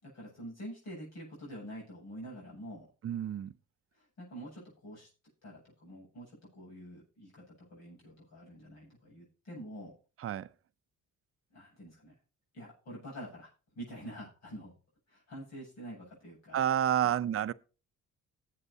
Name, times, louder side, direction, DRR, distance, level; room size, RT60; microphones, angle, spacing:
voice 1, 0.0-2.9 3.9-5.1 5.4-10.0 11.5-12.1 12.5-13.5 13.7-14.7 15.1-16.6, equal, 60° left, 8.0 m, -47 dB
voice 2, 3.0-3.5 10.2-10.5 16.5-17.5, right 10 dB, 50° right, 0.6 m, -29 dB
19.5 x 8.2 x 2.8 m
cardioid pair, 90°, 30 cm